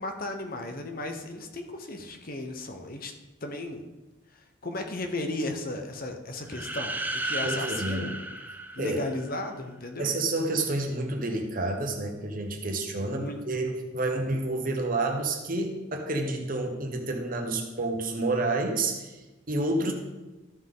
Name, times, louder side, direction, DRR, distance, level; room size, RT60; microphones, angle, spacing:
voice 1, 0.0-3.1 3.4-3.8 4.6-8.1 8.8-10.1 13.0-13.4, left 2 dB, 45° left, 5 dB, 0.9 m, -35 dB
sound 1, 6.5-9.4, right 2 dB, 10° right, 0.5 m, -34 dB
voice 2, 7.4-8.1 8.8-9.0 10.0-19.9, right 2 dB, 45° right, 3 dB, 1.2 m, -29 dB
14.0 x 5.6 x 3.9 m, 1.1 s
head